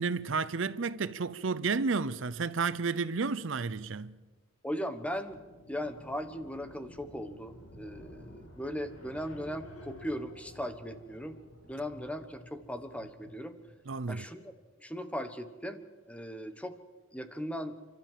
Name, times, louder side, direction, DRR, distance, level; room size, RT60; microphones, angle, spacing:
voice 1, 0.0-4.2 13.9-14.2, right 4 dB, 65° right, 0.7 m, -31 dB
voice 2, 4.6-5.4 5.7-11.4 11.6-13.6 14.1-14.5 14.8-16.8 17.1-17.8, equal, 5° left, 1.2 m, -38 dB
sound 1, 5.0-13.8, left 1 dB, 85° left, 2.9 m, -52 dB
30.0 x 12.5 x 7.6 m
head